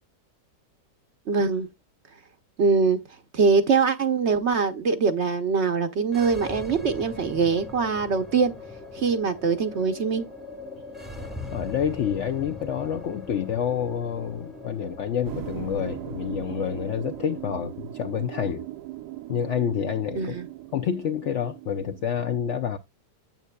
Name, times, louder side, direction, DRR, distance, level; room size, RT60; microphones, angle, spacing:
voice 1, 1.3-1.7 2.6-3.0 3.3-8.5 8.9-10.3 20.1-20.5, right 5 dB, 55° right, 0.9 m, -23 dB
sound 1, 6.0-17.5, left 2 dB, ahead, 0.9 m, -40 dB
voice 2, 11.5-18.6 19.3-20.4 20.7-22.8, left 8 dB, 65° left, 0.7 m, -28 dB
sound 2, 15.2-22.2, right 14 dB, 80° right, 1.2 m, -39 dB
9.1 x 8.1 x 2.2 m
omnidirectional pair, 1.8 m